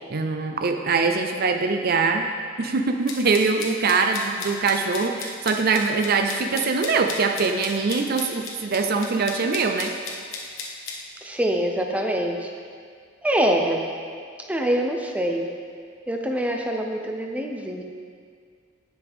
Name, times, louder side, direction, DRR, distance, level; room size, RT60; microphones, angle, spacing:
voice 1, 0.1-2.3 2.6-9.9, right 4 dB, 50° right, 5 dB, 0.5 m, -23 dB
sound 1, 3.1-11.0, left 4 dB, 80° left, 1.3 m, -35 dB
voice 2, 11.2-12.5 13.2-13.9 14.5-15.5 16.1-17.8, right 1 dB, 5° right, 2 dB, 0.7 m, -24 dB
17.5 x 5.9 x 3.6 m, 2.1 s
head